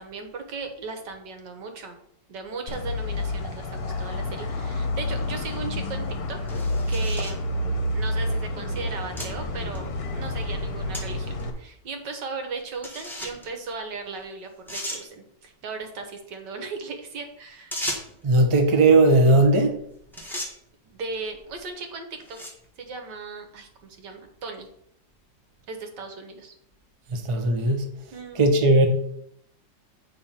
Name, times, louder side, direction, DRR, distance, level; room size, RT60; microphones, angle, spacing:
voice 1, 0.0-2.0 2.3-6.4 6.9-7.5 7.9-9.9 10.1-17.8 20.2-20.5 20.9-22.4 22.8-24.7 25.7-26.5 28.1-28.5, right 4 dB, 70° right, 1.8 m, -37 dB
sound 1, 2.7-11.5, left 1 dB, 55° left, 1.4 m, -29 dB
sound 2, 6.5-7.4 8.2-8.3 9.2-9.3 9.7-9.8 10.9-11.0 11.4-11.5 12.8-13.5 14.2-14.3 14.7-15.0 17.7-18.2 19.6-19.8 20.1-20.5 21.3-21.6 22.2-22.7, equal, ahead, 1.2 m, -34 dB
voice 2, 18.2-19.8 27.1-28.0 28.3-28.9, right 2 dB, 30° right, 0.6 m, -18 dB
8.8 x 3.7 x 5.6 m
omnidirectional pair, 2.0 m